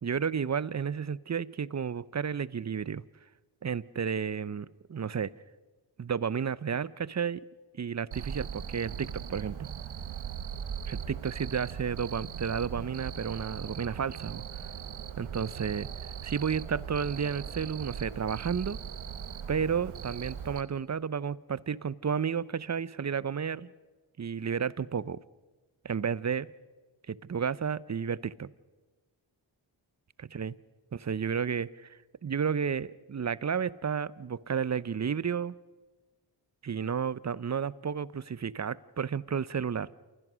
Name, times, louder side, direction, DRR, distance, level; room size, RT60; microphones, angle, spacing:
voice 1, 0.0-3.0 3.6-5.3 6.0-7.4 7.7-9.7 10.9-14.4 15.2-18.8 19.5-23.7 24.2-25.2 25.8-26.5 27.1-28.5 30.2-30.5 30.9-35.5 36.6-39.9, right 7 dB, 35° right, 20 dB, 0.7 m, -32 dB
Cricket, 8.1-20.6, right 7 dB, 85° right, 1.3 m, -39 dB
28.5 x 16.0 x 6.3 m, 1.3 s
cardioid pair, 55°, 47 cm